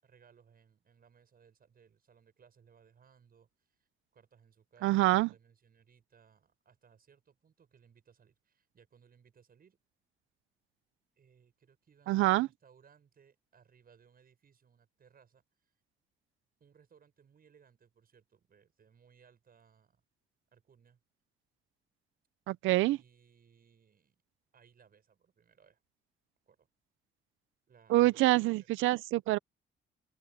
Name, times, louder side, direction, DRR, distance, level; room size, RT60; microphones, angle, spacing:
voice 1, 0.0-9.8 11.2-15.7 16.6-20.0 20.5-21.0 22.8-24.2 24.5-25.8 26.5-26.7 27.7-28.7, right 7 dB, 50° right, 7.4 m, -64 dB
voice 2, 4.8-5.3 12.1-12.5 22.5-23.0 27.9-29.4, right 18 dB, 90° right, 0.5 m, -26 dB
open air
cardioid pair, 90°, 20 cm